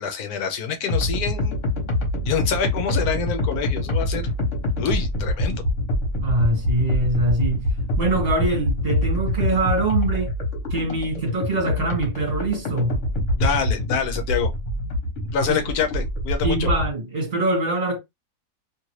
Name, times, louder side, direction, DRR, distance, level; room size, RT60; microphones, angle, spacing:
voice 1, 0.0-1.6 2.2-4.3 4.8-5.6 13.3-14.5 15.2-16.7, left 7 dB, 75° left, 1.0 m, -26 dB
sound 1, 0.9-16.9, left 1 dB, 50° left, 1.3 m, -25 dB
voice 2, 6.2-7.6 8.0-10.3 10.7-13.0 15.4-15.6 16.4-18.0, right 2 dB, 40° right, 1.5 m, -23 dB
2.8 x 2.4 x 3.1 m
omnidirectional pair, 1.7 m